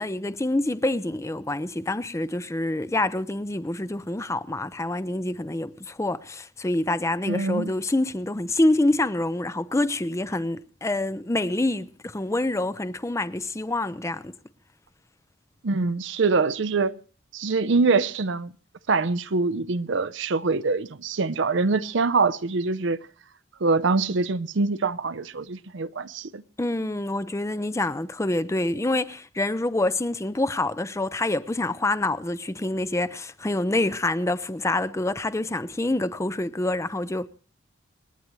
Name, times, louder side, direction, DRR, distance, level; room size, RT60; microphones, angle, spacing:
voice 1, 0.0-14.3 26.6-37.3, left 2 dB, 15° left, 0.5 m, -26 dB
voice 2, 7.3-7.7 15.6-16.9 17.3-18.5 18.9-23.0 23.6-26.4, right 4 dB, 65° right, 0.6 m, -24 dB
27.5 x 9.6 x 3.1 m
head